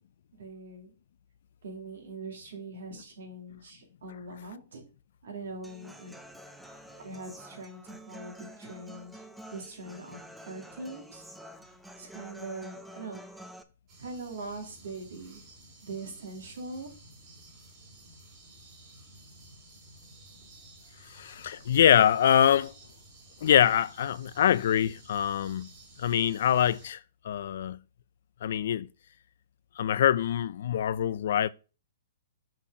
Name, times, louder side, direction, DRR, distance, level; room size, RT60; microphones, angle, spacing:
voice 1, 0.3-0.9 1.6-4.8 5.2-6.2 7.0-9.2 9.5-10.2 10.4-11.3 12.0-13.4 14.0-15.4 15.8-16.9, right 2 dB, 80° right, 2.4 m, -42 dB
Human voice / Acoustic guitar, 5.6-13.6, equal, ahead, 0.5 m, -48 dB
sound 1, 13.9-26.9, right 2 dB, 35° right, 2.6 m, -54 dB
voice 2, 21.0-22.7 23.4-25.7 26.0-27.8 28.4-28.9 29.8-31.5, left 10 dB, 65° left, 0.4 m, -24 dB
6.0 x 4.3 x 4.8 m
hypercardioid pair, 145°, 0 cm